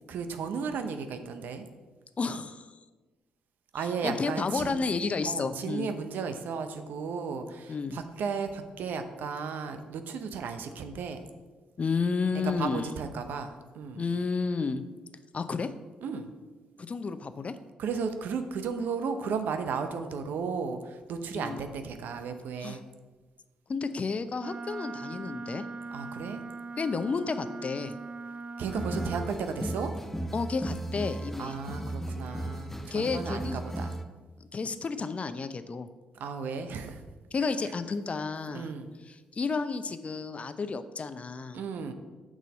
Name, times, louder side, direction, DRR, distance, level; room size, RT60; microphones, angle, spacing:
voice 1, 0.1-1.7 3.7-4.8 5.3-11.2 12.6-14.0 16.0-16.3 17.8-22.8 25.9-26.4 28.6-29.9 31.4-33.9 36.2-37.0 38.5-38.9 41.5-41.9, right 5 dB, 70° right, 8 dB, 0.7 m, -34 dB
voice 2, 2.2-2.7 4.0-5.9 7.7-8.0 11.8-12.9 14.0-14.8 15.3-15.7 16.8-17.6 21.3-21.6 22.6-22.8 23.7-25.6 26.8-28.0 30.3-31.6 32.9-33.6 34.5-35.9 37.3-38.7 39.1-41.6, left 4 dB, 40° left, 12 dB, 0.5 m, -31 dB
Wind instrument woodwind instrument, 24.4-29.3, right 3 dB, 35° right, 0.5 m, -40 dB
sound 1, 28.7-34.1, right 1 dB, 10° left, 0.7 m, -36 dB
6.2 x 4.0 x 6.3 m, 1.3 s
supercardioid pair, 50°, 3 cm